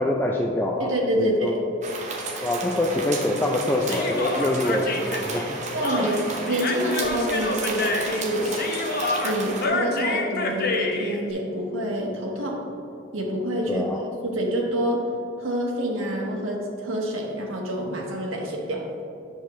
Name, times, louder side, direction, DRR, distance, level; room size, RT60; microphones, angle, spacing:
voice 1, 0.0-0.9 1.2-1.6 2.4-5.6 6.0-6.1 13.7-14.0, left 1 dB, 10° left, 0 dB, 0.3 m, -25 dB
voice 2, 0.8-1.6 5.7-6.2 6.5-8.6 9.2-12.6 13.1-13.8 14.2-15.0 15.4-19.0, equal, 80° right, -1 dB, 1.3 m, -27 dB
sound 1, 1.8-9.7, right 3 dB, 35° right, 0.8 m, -33 dB
Human voice, 3.8-11.2, left 2 dB, 50° left, 0.6 m, -28 dB
8.2 x 6.4 x 3.1 m, 2.7 s
head